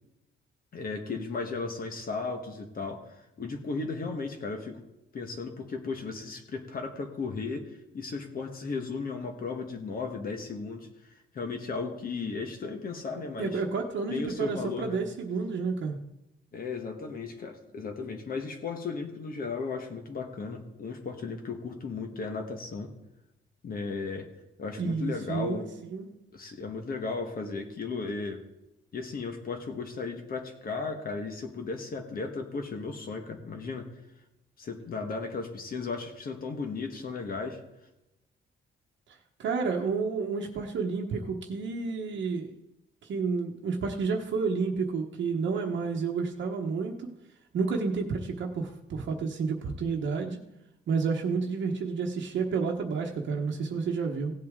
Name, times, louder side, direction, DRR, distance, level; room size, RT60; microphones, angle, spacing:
voice 1, 0.7-4.8 5.1-7.6 7.9-13.6 14.1-15.0 16.5-22.9 23.6-24.3 24.6-25.7 26.3-28.4 28.9-33.9 34.6-37.6, left 4 dB, 45° left, 4 dB, 1.3 m, -35 dB
voice 2, 13.4-16.0 24.8-26.1 39.1-42.5 43.0-47.1 47.5-50.4 50.9-54.3, right 4 dB, 65° right, 0 dB, 1.1 m, -30 dB
17.0 x 8.0 x 3.7 m, 0.92 s
cardioid pair, 155°, 21 cm